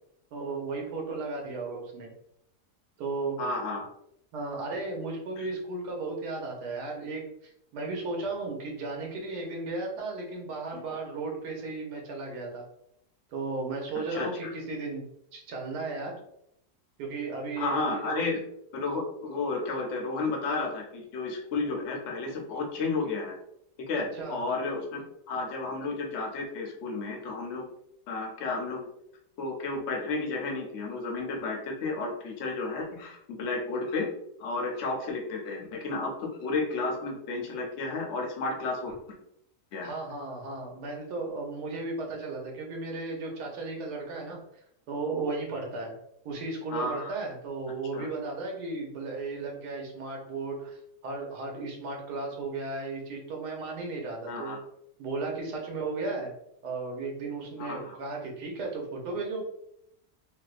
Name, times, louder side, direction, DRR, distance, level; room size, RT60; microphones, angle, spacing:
voice 1, 0.3-2.1 3.0-3.4 4.3-12.6 13.3-15.0 15.3-16.1 17.0-18.2 24.1-24.4 39.8-44.4 44.9-45.9 46.2-54.6 55.0-56.3 56.6-59.5, right 3 dB, 90° right, 0 dB, 1.4 m, -35 dB
voice 2, 3.4-3.8 5.4-5.5 10.7-10.8 13.9-14.5 17.6-18.4 18.7-23.3 23.8-27.6 28.1-28.9 29.4-34.1 34.4-39.0 39.7-39.9 46.7-47.1 47.9-48.1 54.3-54.6 57.6-57.9, left 3 dB, 55° left, 0 dB, 0.9 m, -32 dB
3.3 x 2.7 x 2.4 m, 0.76 s
omnidirectional pair, 1.7 m